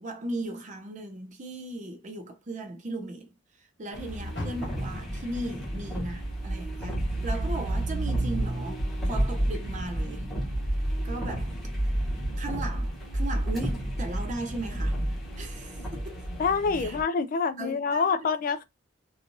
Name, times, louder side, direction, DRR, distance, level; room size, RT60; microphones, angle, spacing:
voice 1, 0.0-3.3 3.8-10.3 11.0-11.6 12.4-15.0 15.4-16.3 16.8-17.0 17.6-18.1, right 2 dB, 40° right, 0.6 m, -37 dB
sound 1, 3.9-17.0, right 1 dB, ahead, 0.9 m, -30 dB
Car, 4.3-7.6 8.0-9.4 9.8-9.9 10.5-10.6, left 1 dB, 65° left, 1.2 m, -43 dB
voice 2, 16.4-18.6, left 5 dB, 45° left, 0.3 m, -26 dB
3.0 x 2.3 x 2.6 m
head